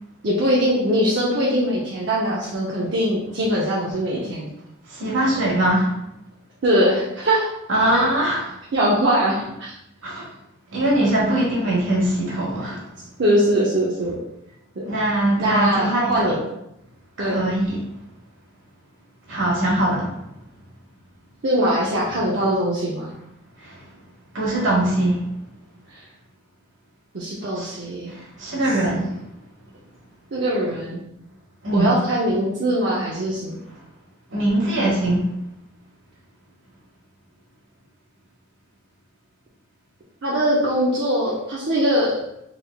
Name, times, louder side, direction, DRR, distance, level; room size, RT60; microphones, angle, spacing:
voice 1, 0.2-4.5 6.6-7.5 7.9-8.1 8.7-9.7 11.1-11.2 13.2-14.1 15.4-16.4 17.2-17.4 21.4-23.1 25.9-26.0 27.1-28.1 30.3-31.0 31.7-33.6 40.2-42.1, equal, 60° right, -6 dB, 0.6 m, -21 dB
voice 2, 4.9-5.9 7.7-8.5 10.0-10.3 10.7-12.8 14.9-16.3 17.2-17.8 19.3-20.2 23.6-23.7 24.3-25.3 27.6-27.8 28.4-29.1 31.6-32.0 34.3-35.3, right 1 dB, 85° right, -3 dB, 1.2 m, -21 dB
3.7 x 3.3 x 2.3 m, 0.83 s
head